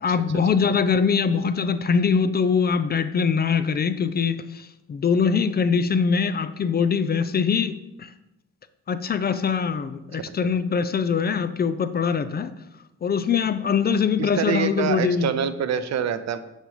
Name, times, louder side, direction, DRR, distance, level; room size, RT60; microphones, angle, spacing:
voice 1, 0.0-8.1 8.9-12.5 13.0-15.3, left 6 dB, 35° left, 12 dB, 0.4 m, -23 dB
voice 2, 14.2-16.4, right 8 dB, 60° right, 11 dB, 0.6 m, -26 dB
6.4 x 5.1 x 4.9 m, 0.92 s
cardioid pair, 90°, 30 cm